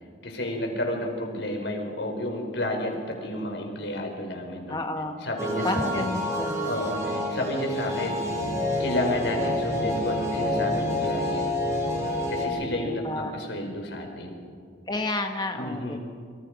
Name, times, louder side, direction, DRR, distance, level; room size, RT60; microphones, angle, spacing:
voice 1, 0.2-4.8 5.2-6.2 6.6-8.2 8.8-11.5 12.3-14.4 15.5-16.0, left 1 dB, 75° left, 3 dB, 4.7 m, -31 dB
voice 2, 4.7-5.2 5.6-6.7 12.4-13.4 14.9-16.0, left 2 dB, 25° left, 4 dB, 1.1 m, -31 dB
sound 1, 5.4-12.5, left 1 dB, 20° right, 5.1 m, -28 dB
sound 2, 7.1-11.5, equal, ahead, 6.4 m, -43 dB
28.5 x 25.0 x 5.2 m, 2.2 s
head